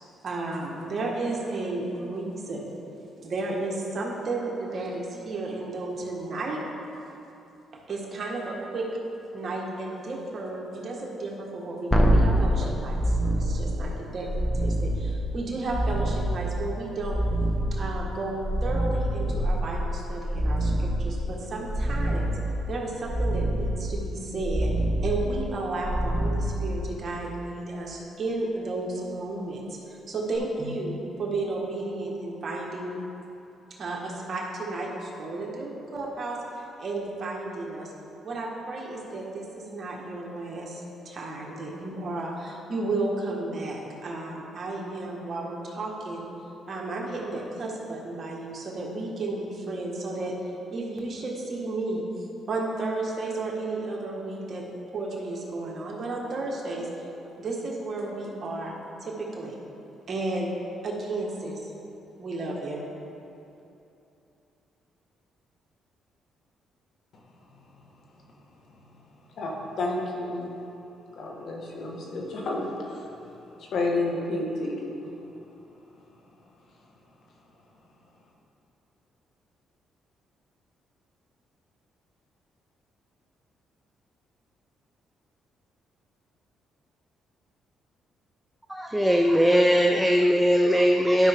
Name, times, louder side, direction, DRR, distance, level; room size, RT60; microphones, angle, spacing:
voice 1, 0.2-2.7 3.2-6.6 7.9-8.9 9.3-14.3 14.6-17.2 17.7-22.4 22.7-24.7 25.0-33.0 33.7-37.9 38.2-46.3 46.7-54.6 54.9-56.9 57.4-58.7 59.0-59.6 60.1-60.5 60.8-61.7 62.2-62.8, right 2 dB, 45° right, -2 dB, 1.6 m, -33 dB
sound 1, 11.9-27.2 30.3-30.4, right 1 dB, 15° left, 1.1 m, -26 dB
voice 2, 69.3-70.5 71.2-73.3 73.6-74.7, left 2 dB, 65° left, -1 dB, 1.4 m, -30 dB
voice 3, 88.7-91.3, equal, 5° right, 2 dB, 0.5 m, -20 dB
11.5 x 5.5 x 3.6 m, 2.9 s
cardioid pair, 90°, 0 cm